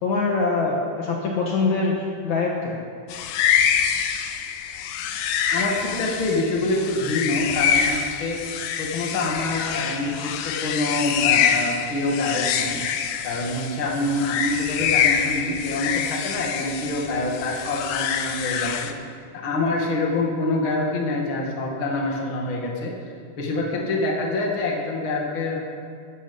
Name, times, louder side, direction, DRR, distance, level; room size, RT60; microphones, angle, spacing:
voice 1, 0.0-2.8, left 3 dB, 60° left, -1 dB, 2.5 m, -23 dB
sound 1, 3.1-18.9, left 8 dB, 75° left, 2.5 m, -25 dB
voice 2, 5.5-12.8 13.2-18.7 19.3-22.9 23.4-25.6, left 2 dB, 40° left, -1 dB, 2.4 m, -26 dB
14.5 x 14.0 x 5.5 m, 2.2 s
omnidirectional pair, 4.1 m